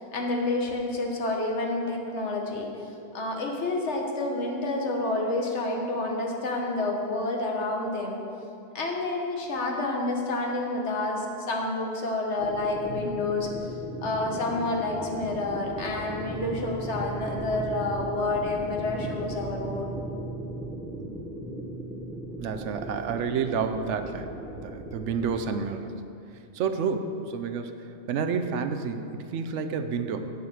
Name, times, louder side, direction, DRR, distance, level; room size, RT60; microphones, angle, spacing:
voice 1, 0.0-2.7 3.1-8.2 8.7-13.5 14.0-19.9, left 2 dB, 75° left, 0 dB, 1.5 m, -29 dB
sound 1, 12.4-25.4, right 1 dB, ahead, 0.6 m, -37 dB
voice 2, 12.9-13.2 22.4-25.9 26.5-27.7 28.1-30.3, right 6 dB, 85° right, 8 dB, 1.0 m, -30 dB
8.3 x 7.1 x 6.2 m, 2.7 s
omnidirectional pair, 1.2 m